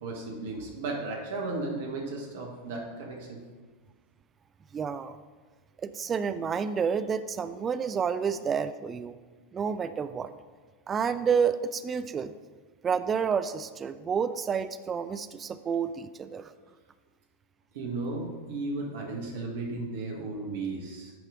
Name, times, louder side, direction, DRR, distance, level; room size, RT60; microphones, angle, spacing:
voice 1, 0.0-3.4 7.8-7.9 17.7-21.1, right 3 dB, 55° right, 0 dB, 1.2 m, -35 dB
voice 2, 4.7-5.2 5.8-9.2 9.5-10.3 10.9-12.3 12.8-16.5, right 6 dB, 20° right, 12 dB, 0.3 m, -29 dB
10.5 x 4.8 x 3.8 m, 1.4 s
figure-of-eight pair, 90°, 0 cm